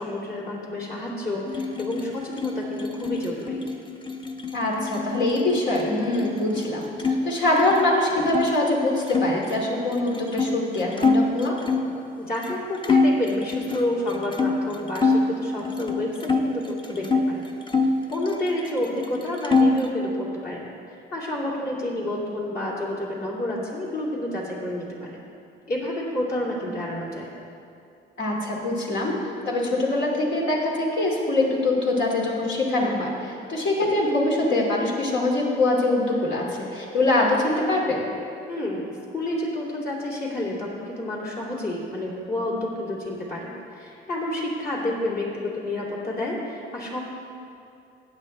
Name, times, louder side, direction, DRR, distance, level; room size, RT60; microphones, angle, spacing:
voice 1, 0.0-3.7 12.2-17.4 18.1-25.2 25.7-27.3 38.5-38.9 39.1-47.0, left 1 dB, 50° left, -5 dB, 2.9 m, -29 dB
sound 1, 1.5-7.2 7.5-8.5 9.1-12.0 12.4-12.6 12.8-15.3 15.6-17.3 17.7-18.8 19.0-19.9, left 3 dB, 25° left, 0.9 m, -25 dB
voice 2, 4.5-11.5 28.2-29.1 29.4-38.0, left 2 dB, 70° left, -2 dB, 2.5 m, -23 dB
15.5 x 9.1 x 3.3 m, 2.6 s
cardioid pair, 90°, 20 cm